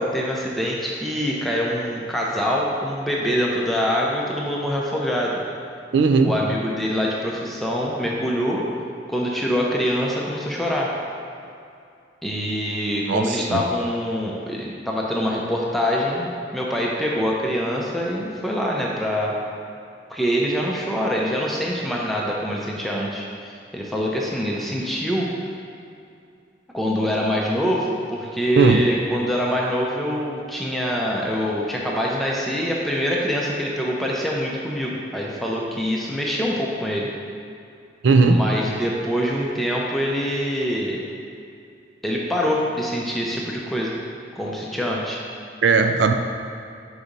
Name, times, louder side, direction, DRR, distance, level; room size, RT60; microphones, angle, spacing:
voice 1, 0.0-5.4 6.2-8.7 9.1-10.9 12.2-19.4 20.1-25.5 26.7-37.1 38.3-41.0 42.0-43.9 44.4-45.2, equal, ahead, -3 dB, 0.6 m, -24 dB
voice 2, 5.9-6.3 13.1-13.6 28.6-28.8 38.0-38.4 45.6-46.1, right 4 dB, 75° right, 6 dB, 0.4 m, -17 dB
4.8 x 4.2 x 5.1 m, 2.5 s
head